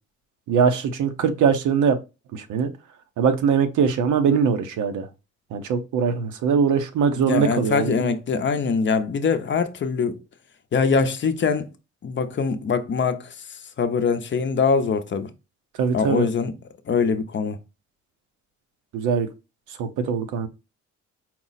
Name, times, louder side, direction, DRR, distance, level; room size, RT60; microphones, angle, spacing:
voice 1, 0.5-2.0 2.3-2.7 3.2-5.1 5.5-8.1 15.8-16.3 18.9-19.3 19.8-20.5, right 6 dB, 80° right, 0.7 m, -21 dB
voice 2, 7.1-10.2 10.7-11.7 12.0-15.3 15.9-16.5 16.9-17.6, left 5 dB, 40° left, 0.6 m, -23 dB
4.4 x 2.0 x 4.0 m
cardioid pair, 90°, 30 cm